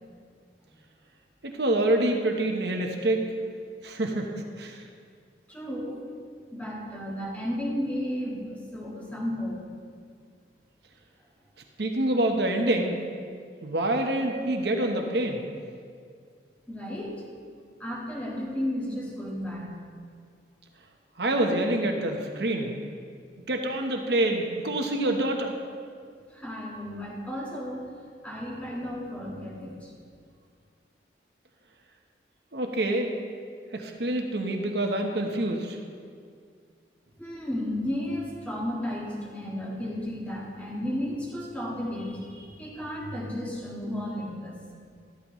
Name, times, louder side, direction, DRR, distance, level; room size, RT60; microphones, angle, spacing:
voice 1, 1.4-3.3 3.8-4.3 4.6-4.8 11.8-13.0 13.6-15.4 21.2-22.7 23.5-25.5 32.5-33.2 33.7-35.8, right 1 dB, 70° right, 3 dB, 1.1 m, -26 dB
voice 2, 5.5-6.0 6.5-9.6 16.7-17.2 17.8-19.7 26.3-27.8 28.2-29.9 37.2-44.6, left 1 dB, 10° left, -4 dB, 1.6 m, -33 dB
13.0 x 12.5 x 3.1 m, 2.1 s
head